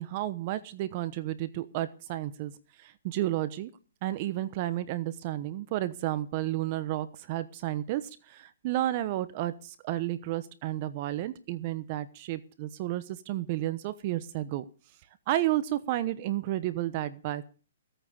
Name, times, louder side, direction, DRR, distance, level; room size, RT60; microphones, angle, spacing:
voice 1, 0.0-2.5 2.8-3.7 4.0-14.6 15.3-17.4, right 14 dB, 35° right, 14 dB, 1.0 m, -32 dB
16.5 x 9.0 x 6.6 m, 0.38 s
hypercardioid pair, 155°, 0 cm